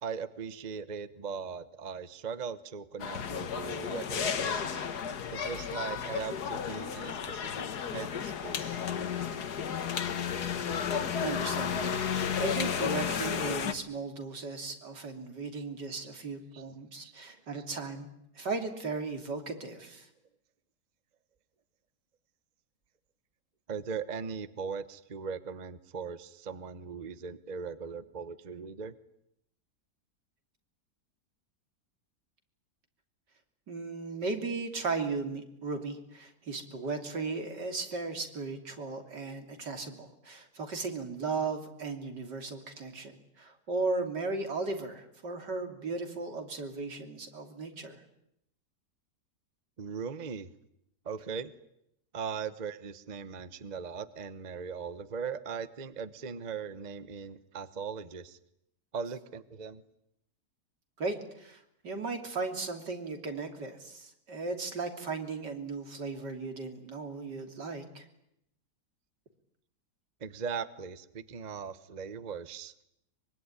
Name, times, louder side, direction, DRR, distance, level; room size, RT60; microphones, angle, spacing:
voice 1, 0.0-4.9 5.3-8.9 9.9-10.0 10.4-10.5 10.9-11.0 15.5-15.6 16.5-16.6 17.0-17.1 23.7-28.9 49.8-50.5 51.0-51.5 52.1-58.4 58.9-59.8 70.2-72.7, right 6 dB, 30° right, 13 dB, 1.1 m, -39 dB
sound 1, 3.0-13.7, left 7 dB, 70° left, 1.9 m, -33 dB
voice 2, 11.2-18.1 18.4-20.1 33.7-48.0 61.0-68.1, right 3 dB, 85° right, 6 dB, 3.7 m, -36 dB
24.0 x 23.5 x 9.9 m, 0.78 s
omnidirectional pair, 1.8 m